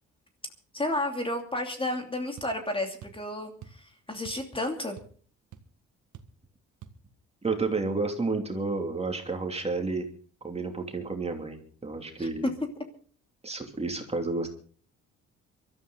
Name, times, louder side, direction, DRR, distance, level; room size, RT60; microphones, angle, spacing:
voice 1, 0.7-5.0 12.2-12.3, left 1 dB, 15° left, 4 dB, 2.8 m, -32 dB
sound 1, 2.4-2.6 3.0-3.3 3.6-3.8 4.3-4.5 4.8-5.3 5.5-5.7 6.1-6.4 6.8-7.0, right 9 dB, 75° right, 1.7 m, -47 dB
voice 2, 7.4-10.1 10.4-12.5 13.4-14.5, right 3 dB, 20° right, 3 dB, 3.0 m, -31 dB
23.5 x 13.5 x 3.9 m, 0.43 s
cardioid pair, 90°, 30 cm